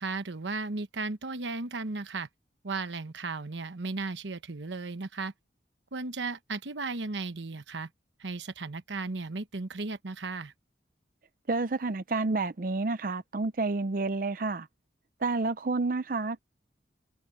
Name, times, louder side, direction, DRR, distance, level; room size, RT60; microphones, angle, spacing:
voice 1, 0.0-2.3 2.6-5.3 5.9-7.9 8.2-10.5, right 3 dB, 85° right, 1.1 m, -35 dB
voice 2, 11.5-14.7 15.2-16.4, right 3 dB, 50° right, 0.5 m, -29 dB
head